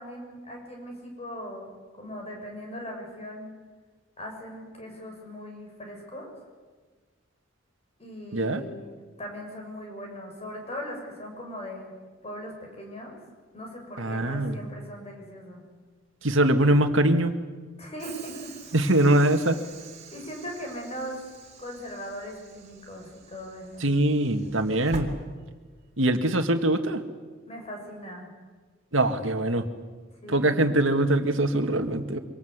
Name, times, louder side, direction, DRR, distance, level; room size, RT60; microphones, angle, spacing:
voice 1, 0.0-1.7 2.0-3.5 4.2-6.3 8.0-8.9 9.2-11.9 12.2-13.2 13.5-15.6 17.8-18.5 18.8-19.0 20.1-21.2 21.6-23.9 27.5-28.3 30.2-30.6, equal, 30° left, 1 dB, 6.7 m, -39 dB
voice 2, 8.3-8.6 14.0-14.6 16.2-17.3 18.7-19.6 23.8-25.1 26.0-27.0 28.9-29.6 30.3-32.2, right 1 dB, 70° right, 7 dB, 2.0 m, -22 dB
Train / Sliding door, 18.0-26.0, right 3 dB, 35° right, 3.3 m, -45 dB
25.0 x 25.0 x 8.2 m, 1.4 s
head